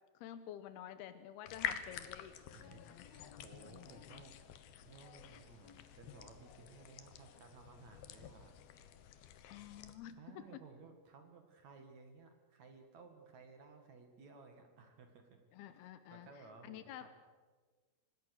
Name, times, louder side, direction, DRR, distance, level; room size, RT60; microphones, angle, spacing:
voice 1, 0.1-2.3 2.6-3.0 3.7-4.2 9.5-10.5 15.5-16.3 16.6-17.1, left 11 dB, 90° left, 11 dB, 2.2 m, -50 dB
sound 1, 1.5-9.9, left 10 dB, 75° left, 2.3 m, -48 dB
voice 2, 2.5-4.4 4.8-8.5 10.2-15.4 15.7-17.3, right 4 dB, 50° right, 5 dB, 2.3 m, -58 dB
25.5 x 20.0 x 6.6 m, 1.4 s
omnidirectional pair, 5.9 m